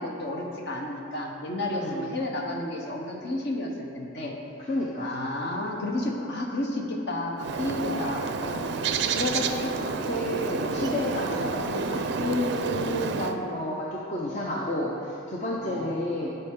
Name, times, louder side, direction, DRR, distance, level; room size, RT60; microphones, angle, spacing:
voice 1, 0.0-4.3 5.0-8.3 15.6-16.0, left 1 dB, 55° left, 0 dB, 1.1 m, -31 dB
voice 2, 1.7-2.0 4.7-5.4 7.8-8.1 8.4-8.7 9.1-16.3, left 1 dB, 35° left, -4 dB, 0.7 m, -31 dB
Bird, 7.4-13.4, right 4 dB, 55° right, 0.4 m, -29 dB
12.0 x 5.5 x 3.7 m, 2.7 s
head